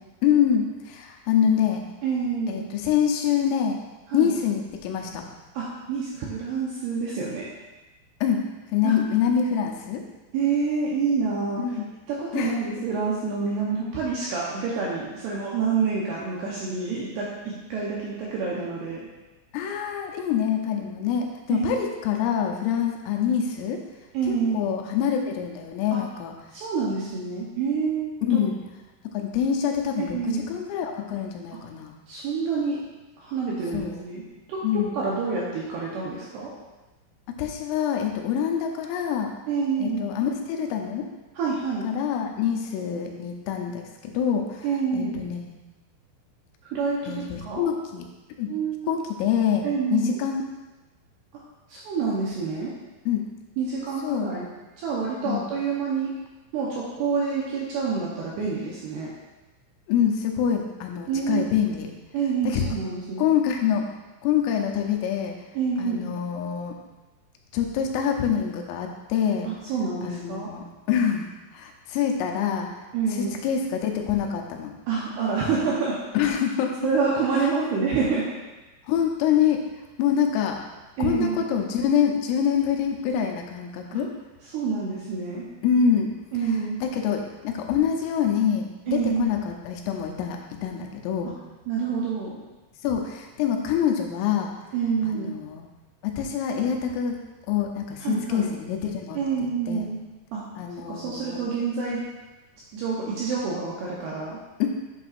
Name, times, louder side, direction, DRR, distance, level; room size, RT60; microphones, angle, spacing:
voice 1, 0.2-1.8 2.5-3.8 4.1-5.2 8.2-10.0 11.6-11.8 12.3-12.6 19.5-23.8 24.3-26.3 28.3-28.6 29.1-31.9 33.7-34.0 34.6-35.0 37.3-39.3 39.8-41.1 41.8-44.7 44.9-45.6 47.1-48.1 48.4-48.5 48.9-49.7 49.9-50.4 53.1-53.3 54.0-54.3 55.2-55.5 59.9-61.9 62.4-62.7 63.2-63.9 64.2-65.3 65.8-66.8 67.5-69.5 70.0-72.9 73.2-74.7 76.1-76.8 77.4-77.5 78.8-79.6 80.0-80.6 81.0-84.1 85.6-86.1 86.8-91.3 92.8-94.5 95.0-95.7 96.0-99.9 100.6-101.4 104.6-104.7, left 8 dB, 85° left, 2 dB, 3.4 m, -25 dB
voice 2, 2.0-2.7 4.1-4.3 5.5-7.5 8.8-8.9 10.3-11.7 12.1-19.1 21.5-21.7 24.1-24.7 26.5-28.4 30.0-30.5 32.1-32.8 33.2-34.2 34.5-36.5 39.5-40.1 41.4-41.9 44.6-45.2 46.6-47.6 48.5-49.0 49.6-50.2 51.3-51.4 51.7-52.7 53.6-54.5 54.8-56.1 56.5-59.1 61.1-61.5 62.1-63.3 65.5-66.1 69.4-70.5 72.9-73.4 74.9-76.0 76.8-78.3 81.0-81.5 83.9-84.0 84.5-85.5 86.3-86.8 88.9-89.3 91.2-91.3 91.7-92.4 94.7-95.3 98.0-98.5 99.2-100.0 100.3-100.4 100.9-102.0 102.7-104.4, right 5 dB, 75° right, -5 dB, 2.5 m, -27 dB
8.4 x 7.9 x 2.5 m, 1.1 s
omnidirectional pair, 5.9 m